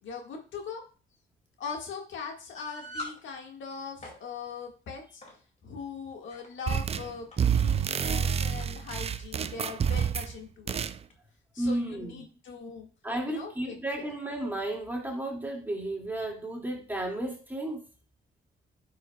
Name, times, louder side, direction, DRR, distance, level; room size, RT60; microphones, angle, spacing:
voice 1, 0.0-0.8 1.6-5.2 5.6-10.8 11.5-12.9 13.3-14.1, left 5 dB, 70° left, 1.8 m, -41 dB
sound 1, 2.5-3.2 3.8-4.2 5.2-5.4 6.1-6.5 7.3-7.4 7.7-7.8 8.6-8.8, left 1 dB, 35° left, 2.5 m, -42 dB
sound 2, 6.7-7.1 7.4-10.3 10.7-11.0, right 7 dB, 30° right, 0.4 m, -28 dB
voice 2, 11.6-12.3 13.0-17.8, right 1 dB, 10° right, 2.3 m, -33 dB
9.6 x 6.1 x 2.3 m
cardioid pair, 90°, 20 cm